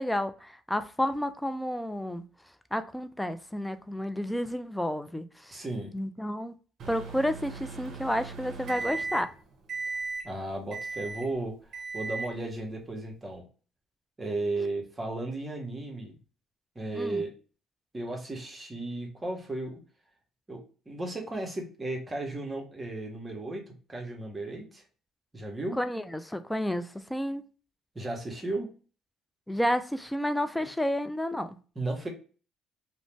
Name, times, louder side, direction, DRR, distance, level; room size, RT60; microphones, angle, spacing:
voice 1, 0.0-2.2 2.7-5.6 5.9-6.5 6.9-9.3 16.9-17.2 25.8-27.4 29.5-31.6, equal, 5° left, 0.4 m, -31 dB
voice 2, 5.5-5.9 10.2-11.6 11.9-13.5 14.2-16.2 16.7-17.3 17.9-19.8 20.5-20.6 20.9-24.8 25.3-25.8 27.9-28.7 30.6-30.7 31.8-32.1, right 2 dB, 25° right, 1.0 m, -34 dB
Microwave oven, 6.8-9.4 9.7-10.3 10.7-11.3 11.7-12.3, right 3 dB, 60° right, 0.7 m, -37 dB
2.5 x 2.1 x 3.1 m
supercardioid pair, 70°, 0 cm